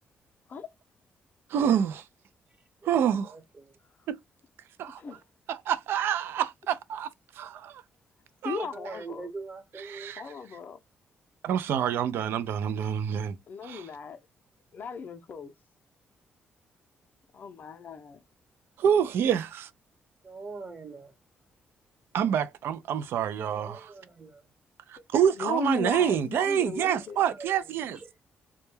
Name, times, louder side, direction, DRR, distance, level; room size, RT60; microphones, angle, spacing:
voice 1, 1.5-2.0 2.8-3.3 4.1-4.2 4.8-5.0 5.5-7.1 7.4-7.8 8.4-8.7 9.9-10.2 11.4-13.4 13.6-13.9 18.8-19.7 22.1-23.9 24.9-28.0, right 9 dB, 75° right, 0.3 m, -27 dB
voice 2, 3.2-3.7 8.7-10.2 20.2-21.1 23.6-24.5 27.2-27.6 28.0-28.2, right 3 dB, 35° right, 1.0 m, -43 dB
voice 3, 8.4-9.3 10.2-10.8 13.5-14.2 14.7-15.5 17.3-18.2 25.0-25.1 25.3-27.2 27.9-28.0, left 5 dB, 55° left, 0.5 m, -37 dB
2.2 x 2.1 x 3.0 m
cardioid pair, 90°, 4 cm